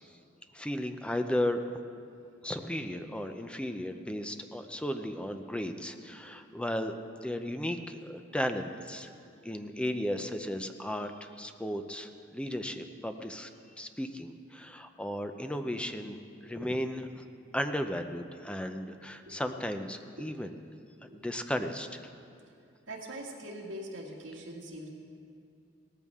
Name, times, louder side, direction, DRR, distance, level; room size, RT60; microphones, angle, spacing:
voice 1, 0.5-1.6 2.4-9.1 9.4-13.5 13.8-17.2 17.5-20.6 21.0-22.0, left 1 dB, 5° left, 7 dB, 0.6 m, -35 dB
voice 2, 22.9-24.9, right 1 dB, 75° right, -2 dB, 2.1 m, -42 dB
17.5 x 14.0 x 3.6 m, 2.4 s
head